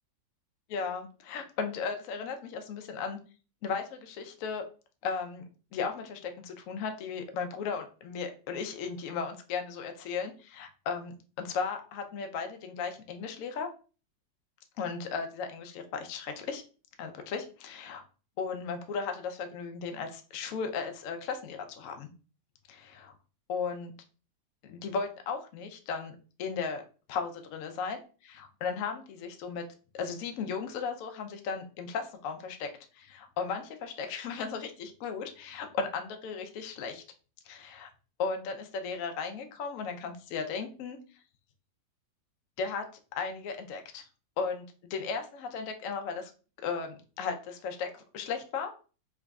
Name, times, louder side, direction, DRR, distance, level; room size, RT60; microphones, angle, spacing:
voice 1, 0.7-3.2 3.6-4.6 5.0-5.4 5.7-13.7 14.8-16.6 17.0-18.0 18.4-22.1 22.7-23.1 23.5-23.9 24.6-26.8 27.1-29.6 29.9-32.7 32.9-37.0 37.5-37.9 38.2-41.0 42.6-42.9 43.1-44.1 44.4-44.6 44.9-46.3 46.6-48.8, left 5 dB, 75° left, 6 dB, 0.7 m, -36 dB
3.5 x 2.9 x 2.3 m, 0.36 s
omnidirectional pair, 2.0 m